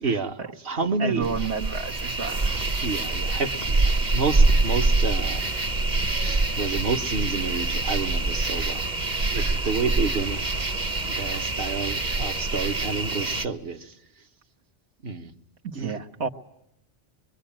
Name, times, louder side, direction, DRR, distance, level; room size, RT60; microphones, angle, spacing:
voice 1, 0.0-1.3 2.8-5.5 6.2-8.8 9.3-10.4 11.0-14.0 15.0-15.3 15.7-16.0, right 4 dB, 60° right, 5 dB, 1.5 m, -29 dB
voice 2, 1.0-2.6 9.3-9.6 15.6-16.3, right 5 dB, 80° right, 2 dB, 1.8 m, -31 dB
sound 1, 1.2-13.5, right 2 dB, 45° right, 1.2 m, -25 dB
24.5 x 23.5 x 8.8 m, 0.77 s
omnidirectional pair, 1.1 m